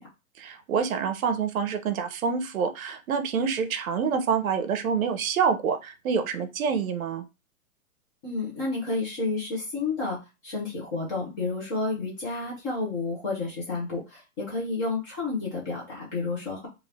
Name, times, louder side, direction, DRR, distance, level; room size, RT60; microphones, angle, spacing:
voice 1, 0.4-7.2, right 6 dB, 70° right, 9 dB, 0.7 m, -27 dB
voice 2, 8.2-10.2 10.4-16.7, left 3 dB, 15° left, -5 dB, 0.5 m, -30 dB
2.7 x 2.4 x 3.2 m, 0.27 s
hypercardioid pair, 155°, 44 cm